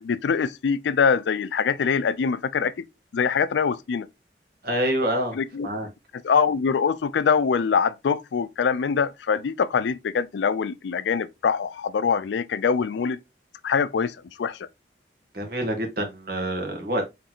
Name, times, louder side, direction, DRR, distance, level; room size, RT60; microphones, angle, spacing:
voice 1, 0.0-2.7 3.1-4.1 5.3-5.7 6.1-13.2 13.6-14.6, left 6 dB, 80° left, 0.4 m, -24 dB
voice 2, 4.6-5.4 5.6-5.9 15.3-17.0, right 1 dB, 60° right, 1.2 m, -26 dB
3.9 x 3.2 x 2.8 m
head